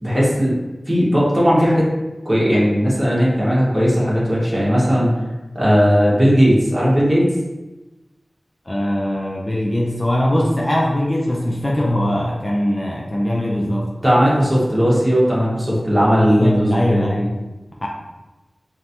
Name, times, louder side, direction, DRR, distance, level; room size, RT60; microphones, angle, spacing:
voice 1, 0.0-0.5 0.9-1.9 2.2-5.1 5.5-7.3 14.0-17.1, equal, 20° right, -7 dB, 1.4 m, -16 dB
voice 2, 8.7-14.0 16.1-17.5 17.8-17.9, left 1 dB, 25° left, -3 dB, 0.5 m, -21 dB
5.1 x 2.7 x 2.8 m, 1.1 s
wide cardioid pair, 75°, 0 cm